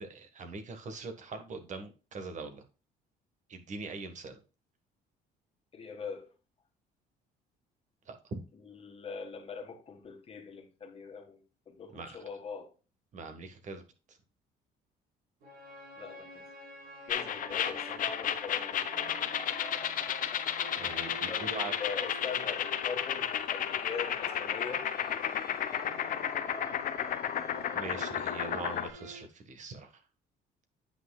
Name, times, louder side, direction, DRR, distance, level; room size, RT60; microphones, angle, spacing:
voice 1, 0.0-2.6 3.5-4.4 8.0-8.4 11.9-12.2 13.1-13.8 14.1-14.2 20.8-21.7 27.7-30.0, right 3 dB, 45° right, 1.5 m, -42 dB
voice 2, 5.7-6.3 8.7-11.4 11.7-12.7 16.0-16.4 17.1-18.9 21.3-24.9, left 5 dB, 35° left, 1.8 m, -42 dB
sound 1, 15.4-29.2, right 2 dB, 75° right, 4.4 m, -48 dB
sound 2, 17.1-28.9, left 9 dB, 55° left, 0.7 m, -33 dB
9.1 x 5.9 x 2.3 m
cardioid pair, 110°, 17 cm